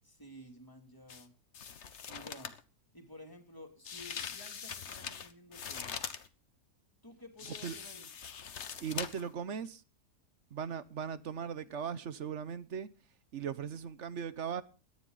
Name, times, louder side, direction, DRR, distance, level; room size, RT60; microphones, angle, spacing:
voice 1, 0.0-1.4 2.1-2.5 2.9-6.0 7.0-8.1, left 1 dB, 10° left, 2.9 m, -53 dB
sound 1, 1.1-1.2 1.5-2.6 3.8-6.3 7.4-9.3 9.6-9.7, left 7 dB, 50° left, 1.2 m, -42 dB
voice 2, 8.8-9.8 10.5-12.9 13.3-14.6, right 7 dB, 55° right, 1.0 m, -38 dB
17.5 x 12.0 x 3.9 m
omnidirectional pair, 1.7 m